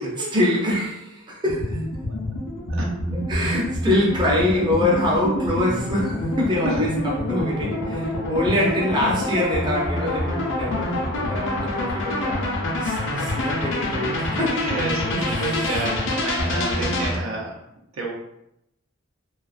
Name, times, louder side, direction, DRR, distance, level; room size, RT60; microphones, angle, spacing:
voice 1, 0.0-1.8 3.1-12.5 12.8-14.7 15.1-15.9, left 1 dB, 20° right, -4 dB, 0.6 m, -25 dB
sound 1, 1.4-17.2, left 1 dB, 65° left, 0.5 m, -26 dB
voice 2, 14.5-17.6 18.0-18.1, right 2 dB, 80° right, -1 dB, 0.6 m, -30 dB
2.3 x 2.3 x 2.4 m, 0.80 s
head